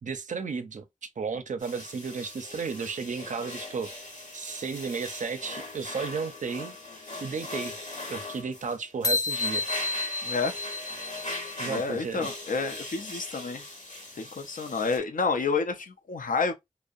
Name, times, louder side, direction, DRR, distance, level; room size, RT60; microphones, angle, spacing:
voice 1, 0.0-3.9 4.3-6.7 7.2-7.7 8.1-9.6 11.6-12.3 13.1-13.2, right 5 dB, 70° right, 0.4 m, -34 dB
sound 1, 1.6-15.0, left 2 dB, 70° left, 0.9 m, -40 dB
sound 2, 9.0-11.7, left 3 dB, 25° left, 0.3 m, -30 dB
voice 2, 10.2-10.6 11.7-13.6 14.1-16.5, left 4 dB, 85° left, 0.5 m, -29 dB
2.6 x 2.0 x 2.4 m
cardioid pair, 40°, 14 cm